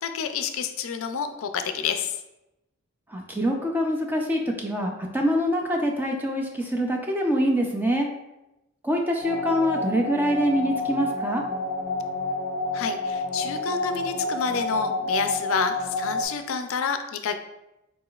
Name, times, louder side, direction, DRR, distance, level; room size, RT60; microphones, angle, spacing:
voice 1, 0.0-2.2 12.7-17.3, left 6 dB, 65° left, 7 dB, 0.4 m, -29 dB
voice 2, 3.1-8.1 8.8-11.4, equal, 10° right, 1 dB, 0.4 m, -25 dB
sound 1, 9.2-16.2, left 2 dB, 35° right, 1.1 m, -29 dB
4.8 x 4.1 x 2.4 m, 0.93 s
head